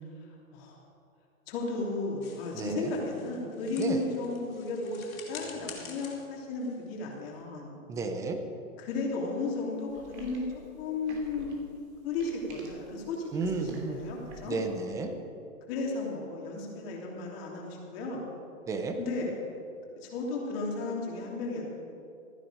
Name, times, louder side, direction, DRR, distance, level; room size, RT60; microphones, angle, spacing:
voice 1, 1.5-7.7 8.8-10.4 10.8-11.5 12.0-14.6 15.7-18.2 19.0-19.3 20.0-21.7, left 3 dB, 45° left, -2 dB, 3.1 m, -34 dB
sound 1, 2.2-7.5, left 6 dB, 75° left, 2.9 m, -49 dB
voice 2, 2.5-2.9 3.8-4.0 7.9-8.4 13.3-14.0 14.4-15.1 18.7-19.0, right 3 dB, 10° right, 6 dB, 0.4 m, -32 dB
sound 2, 9.9-14.6, right 3 dB, 55° right, 3.1 m, -47 dB
14.0 x 9.9 x 5.1 m, 2.6 s
hypercardioid pair, 125°, 42 cm